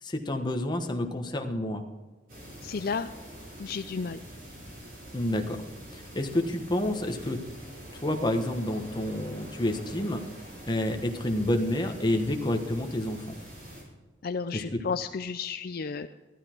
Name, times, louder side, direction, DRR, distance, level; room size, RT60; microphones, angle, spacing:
voice 1, 0.0-1.8 5.1-5.6 5.9-7.4 7.9-10.2 10.7-13.3 14.5-14.8, left 1 dB, 25° left, 4 dB, 1.2 m, -29 dB
sound 1, 2.3-13.8, right 1 dB, 45° right, 4.4 m, -45 dB
voice 2, 2.6-3.1 3.6-4.2 14.2-16.1, left 5 dB, 50° left, 9 dB, 0.4 m, -32 dB
14.0 x 12.0 x 4.5 m, 1.3 s
head